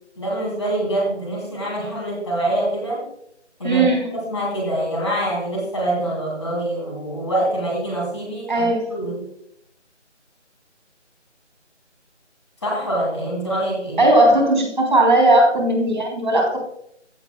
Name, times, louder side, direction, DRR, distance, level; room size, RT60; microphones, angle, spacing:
voice 1, 0.2-3.1 3.6-3.9 4.1-9.3 12.6-14.0, right 1 dB, 25° left, -4 dB, 2.5 m, -25 dB
voice 2, 3.6-4.2 8.5-8.9 14.0-16.6, right 1 dB, 40° right, 0 dB, 3.5 m, -17 dB
16.0 x 6.9 x 2.2 m, 0.71 s
figure-of-eight pair, 170°, 36 cm